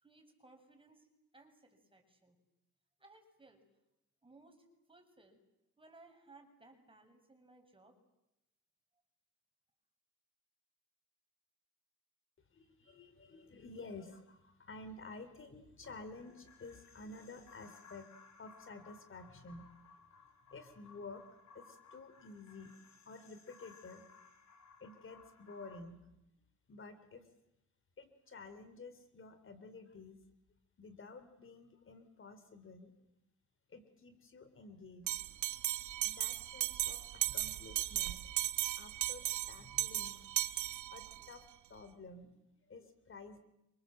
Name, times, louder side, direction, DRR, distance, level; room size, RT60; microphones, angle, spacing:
voice 1, 0.0-1.1 1.3-2.4 3.0-3.6 4.2-5.4 5.8-8.0, right 2 dB, 15° right, 4 dB, 7.1 m, -62 dB
voice 2, 12.5-18.1 18.4-19.7 20.1-21.2 21.5-22.8 23.1-24.1 24.8-26.0 26.7-27.3 28.0-30.2 30.8-32.9 33.7-35.2 36.0-38.2 38.8-40.2 40.9-43.4, left 3 dB, 40° left, 10 dB, 3.4 m, -52 dB
sound 1, 15.8-25.8, left 5 dB, 65° left, 7.1 m, -61 dB
Bell, 35.1-41.3, right 14 dB, 80° right, 1.1 m, -36 dB
29.0 x 26.5 x 7.8 m, 0.86 s
cardioid pair, 90°, 30 cm